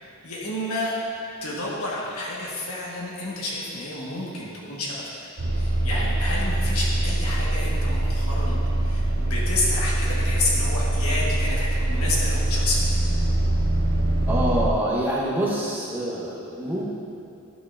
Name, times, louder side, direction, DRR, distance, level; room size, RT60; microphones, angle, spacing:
voice 1, 0.0-0.9 1.4-5.0 5.5-13.0, left 2 dB, 80° left, -5 dB, 1.4 m, -30 dB
sound 1, 5.4-14.7, right 1 dB, 45° right, 0.5 m, -23 dB
voice 2, 14.3-16.8, right 1 dB, 10° right, -6 dB, 1.0 m, -26 dB
10.5 x 6.3 x 2.5 m, 2.7 s
head